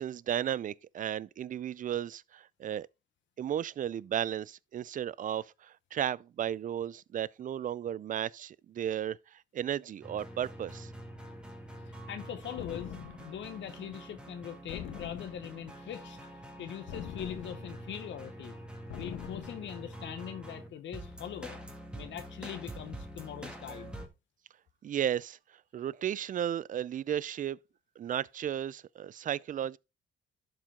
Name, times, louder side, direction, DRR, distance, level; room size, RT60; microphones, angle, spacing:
voice 1, 0.0-2.9 3.4-10.9 24.8-25.4 25.7-27.6 28.0-29.8, right 10 dB, 40° right, 0.4 m, -34 dB
sound 1, 10.0-24.1, right 1 dB, 5° right, 1.9 m, -46 dB
voice 2, 11.9-13.0 13.2-18.5 19.0-21.6 21.9-23.9, left 9 dB, 70° left, 1.0 m, -42 dB
sound 2, 12.6-13.4 14.7-15.7 16.9-17.9 18.9-19.8, left 9 dB, 85° left, 1.3 m, -43 dB
12.0 x 4.6 x 3.7 m
cardioid pair, 90°, 20 cm